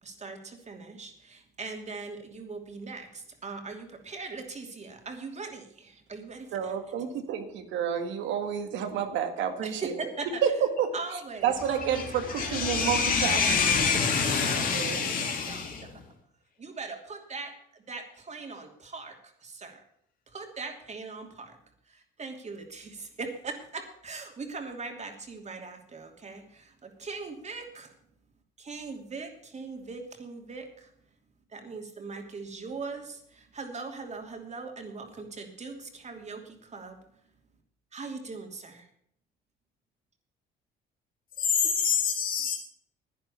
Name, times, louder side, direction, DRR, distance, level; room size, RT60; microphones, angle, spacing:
voice 1, 0.0-6.7 9.6-10.4 10.9-12.6 13.0-13.4 14.4-14.8 15.1-15.9 16.6-19.8 20.3-21.6 21.9-28.0 28.6-30.9 31.5-37.0 37.9-38.9, right 4 dB, 35° right, 2.9 m, -40 dB
voice 2, 6.5-9.9 10.4-10.5 10.8-10.9 11.4-13.4 14.4-15.0, right 8 dB, 75° right, 1.9 m, -30 dB
voice 3, 11.8-15.9 41.4-42.6, left 6 dB, 50° left, 2.0 m, -26 dB
10.5 x 10.0 x 6.9 m
supercardioid pair, 80°, 19 cm